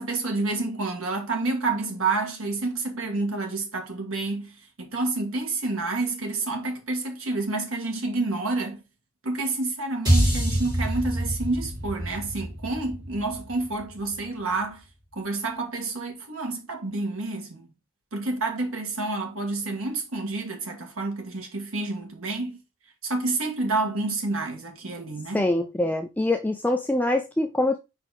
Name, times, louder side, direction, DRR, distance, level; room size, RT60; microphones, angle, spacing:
voice 1, 0.0-8.8 9.2-14.8 15.1-17.7 18.1-22.6 23.0-25.5, right 3 dB, 75° right, 1.7 m, -29 dB
sound 1, 10.1-14.4, equal, 20° right, 3.5 m, -26 dB
voice 2, 25.3-27.8, left 1 dB, 10° left, 0.3 m, -24 dB
4.9 x 4.2 x 4.9 m
head